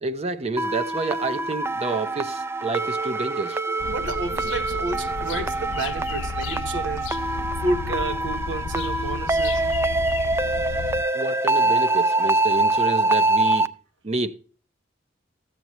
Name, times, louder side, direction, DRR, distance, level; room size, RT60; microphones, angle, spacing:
voice 1, 0.0-3.6 11.1-13.7 14.0-14.3, right 3 dB, 35° right, 0.7 m, -29 dB
sound 1, 0.6-13.7, right 2 dB, 15° right, 0.3 m, -24 dB
voice 2, 3.7-7.2 7.6-9.6, right 2 dB, 80° right, 1.0 m, -30 dB
sound 2, 3.8-11.0, left 5 dB, 85° left, 0.4 m, -33 dB
13.5 x 7.7 x 3.1 m
head